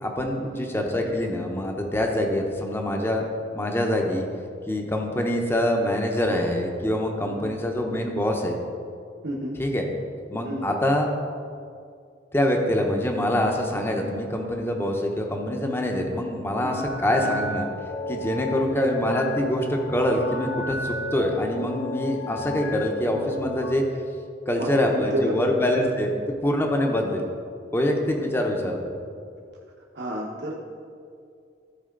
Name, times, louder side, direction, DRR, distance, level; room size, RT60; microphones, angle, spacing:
voice 1, 0.0-3.2 3.5-4.2 4.7-8.6 9.6-9.8 10.3-11.1 12.3-17.7 18.1-23.8 24.5-26.1 26.4-27.3 27.7-29.0, left 1 dB, 15° left, 2 dB, 0.9 m, -25 dB
voice 2, 9.2-9.6 10.4-10.7 16.6-16.9 24.6-25.5 29.9-30.5, equal, 70° right, -4 dB, 1.2 m, -30 dB
sound 1, 16.7-23.7, left 2 dB, 85° left, 0.8 m, -33 dB
14.5 x 4.9 x 3.8 m, 2.4 s
head